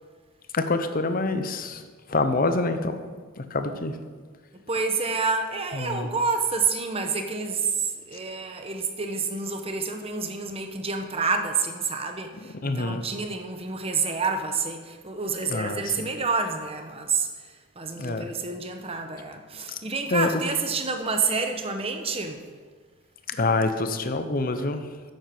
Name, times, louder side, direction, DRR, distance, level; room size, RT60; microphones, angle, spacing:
voice 1, 0.5-1.8 2.1-3.0 3.4-4.0 5.7-6.1 12.3-13.0 15.5-16.1 18.0-18.3 19.7-19.8 20.1-20.4 23.3-24.9, left 3 dB, 40° left, 0.7 m, -26 dB
voice 2, 4.7-17.3 17.8-22.4, right 4 dB, 25° right, 0.9 m, -28 dB
10.0 x 7.9 x 6.0 m
head